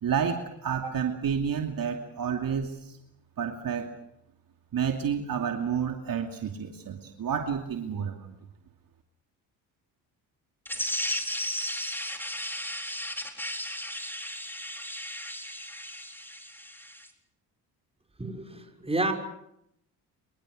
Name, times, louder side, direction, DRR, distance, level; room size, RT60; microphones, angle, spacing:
voice 1, 0.0-3.0 3.4-3.9 4.7-8.3, right 7 dB, 55° right, 4 dB, 2.7 m, -30 dB
sound 1, 10.7-17.1, left 1 dB, 5° left, 4.1 m, -35 dB
voice 2, 18.2-19.1, right 2 dB, 15° right, 4 dB, 6.0 m, -30 dB
27.5 x 23.5 x 6.6 m, 0.77 s
supercardioid pair, 70°, 41 cm